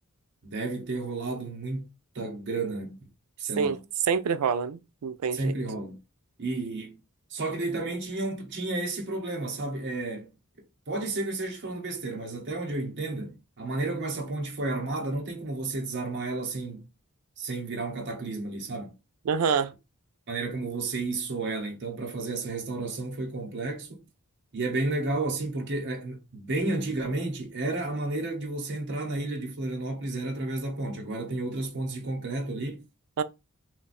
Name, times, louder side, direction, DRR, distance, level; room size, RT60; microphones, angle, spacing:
voice 1, 0.4-3.1 3.4-3.8 5.3-6.0 6.4-7.0 7.3-10.3 10.9-16.9 17.4-18.9 20.3-24.1 24.5-32.8, right 2 dB, 55° right, 0.9 m, -32 dB
voice 2, 4.1-5.5 19.3-19.7 33.2-33.3, right 6 dB, 90° right, 0.4 m, -26 dB
2.5 x 2.3 x 4.0 m
head